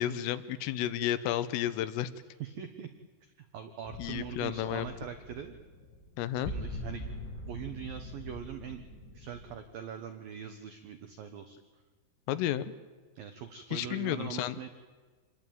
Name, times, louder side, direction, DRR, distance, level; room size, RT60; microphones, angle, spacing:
voice 1, 0.0-2.1 4.0-4.9 6.2-6.6 12.3-12.7 13.7-14.6, left 12 dB, 90° left, 14 dB, 3.7 m, -32 dB
voice 2, 2.4-2.9 3.2-5.6 6.5-7.0 7.5-8.8 9.1-11.6 13.2-14.7, right 8 dB, 65° right, 7 dB, 2.4 m, -42 dB
sound 1, 3.9-9.6, left 1 dB, 65° left, 10.5 m, -43 dB
27.5 x 21.0 x 9.3 m, 1.4 s
omnidirectional pair, 5.7 m